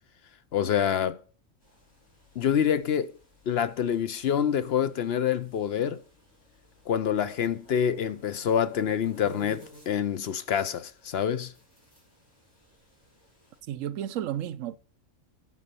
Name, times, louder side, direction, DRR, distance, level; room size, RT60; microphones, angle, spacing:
voice 1, 0.5-1.2 2.4-3.2 3.5-6.0 6.9-11.5, left 8 dB, 60° left, 0.8 m, -26 dB
sound 1, 1.6-13.6, left 2 dB, 90° left, 6.1 m, -53 dB
voice 2, 13.7-14.8, right 11 dB, 85° right, 1.0 m, -32 dB
9.5 x 5.3 x 6.8 m
omnidirectional pair, 1.3 m